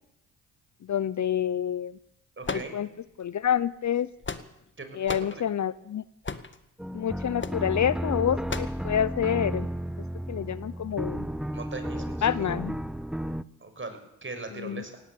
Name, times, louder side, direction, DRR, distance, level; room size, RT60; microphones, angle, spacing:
voice 1, 0.8-2.0 2.5-2.9 3.2-4.1 4.9-6.0 6.9-9.7 10.3-11.3 12.2-12.8 14.5-14.8, left 9 dB, 45° left, 18 dB, 0.9 m, -28 dB
sound 1, 2.4-3.2 4.0-4.7 5.1-5.4 6.2-6.6 7.4-7.6 8.5-8.8, left 4 dB, 30° left, 1.9 m, -35 dB
voice 2, 2.4-2.7 4.8-5.4 11.5-12.5 13.6-15.0, right 3 dB, 30° right, 7 dB, 6.2 m, -40 dB
Detuned piano, 6.8-13.4, equal, ahead, 0.9 m, -33 dB
18.0 x 17.0 x 8.5 m, 0.81 s
hypercardioid pair, 50°, 40 cm